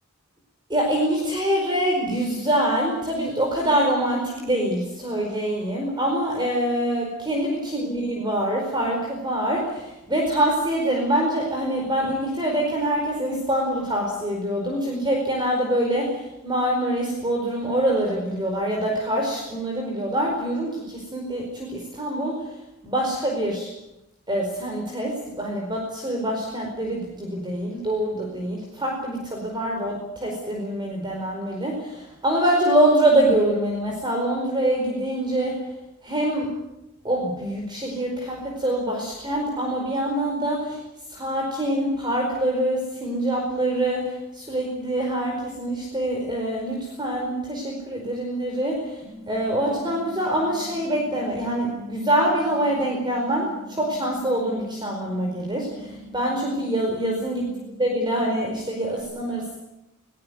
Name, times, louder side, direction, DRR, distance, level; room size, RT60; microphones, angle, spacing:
voice 1, 0.7-22.5 22.8-23.7 24.3-35.6 36.0-36.5 37.0-40.8 41.1-57.4 57.8-59.6, right 1 dB, 20° right, 0 dB, 4.8 m, -25 dB
sound 1, 49.0-59.0, right 1 dB, 5° right, 6.4 m, -43 dB
21.0 x 19.0 x 9.5 m, 0.92 s
head